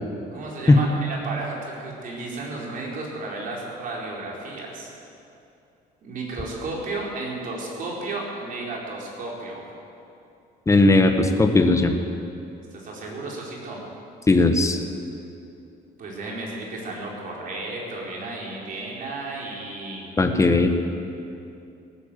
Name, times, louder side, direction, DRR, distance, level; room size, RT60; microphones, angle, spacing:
voice 1, 0.3-4.9 6.0-9.6 12.7-13.8 16.0-20.1, right 2 dB, 55° right, -3 dB, 4.2 m, -33 dB
voice 2, 10.7-11.9 14.3-14.8 20.2-20.7, left 2 dB, 15° left, 6 dB, 1.4 m, -17 dB
17.5 x 10.0 x 7.6 m, 2.7 s
cardioid pair, 110°, 17 cm